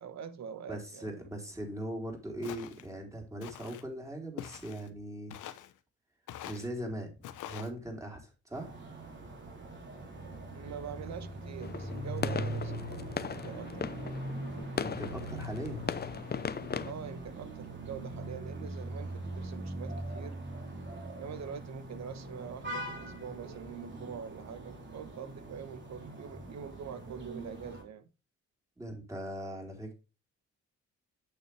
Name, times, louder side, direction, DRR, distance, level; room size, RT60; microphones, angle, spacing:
voice 1, 0.0-1.1 10.2-14.2 16.8-20.4 21.2-28.1, right 7 dB, 65° right, 1.2 m, -44 dB
voice 2, 0.7-5.3 6.4-8.7 14.8-15.9 28.8-29.9, right 1 dB, 10° right, 3.8 m, -40 dB
Walk footsteps, 2.4-2.9 3.4-3.8 4.4-4.9 5.3-5.7 6.3-6.7 7.2-7.7, left 11 dB, 85° left, 0.9 m, -44 dB
sound 1, 8.5-27.8, right 1 dB, 40° right, 3.3 m, -41 dB
sound 2, 11.6-16.9, left 6 dB, 35° left, 0.7 m, -38 dB
8.7 x 6.8 x 3.3 m
cardioid pair, 90°, 30 cm